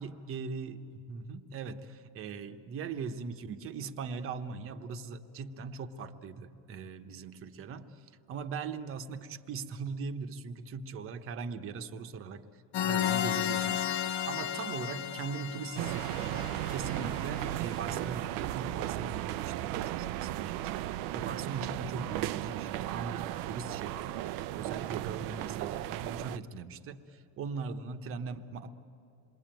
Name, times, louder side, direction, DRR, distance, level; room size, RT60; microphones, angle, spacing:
voice 1, 0.0-7.9 8.3-12.4 12.8-20.8 21.1-28.7, right 5 dB, 35° right, 8 dB, 1.1 m, -40 dB
sound 1, 12.7-17.4, left 10 dB, 45° left, 0.9 m, -33 dB
sound 2, 15.8-26.4, right 14 dB, 55° right, 0.6 m, -35 dB
28.0 x 22.0 x 9.1 m, 2.9 s
cardioid pair, 165°, 39 cm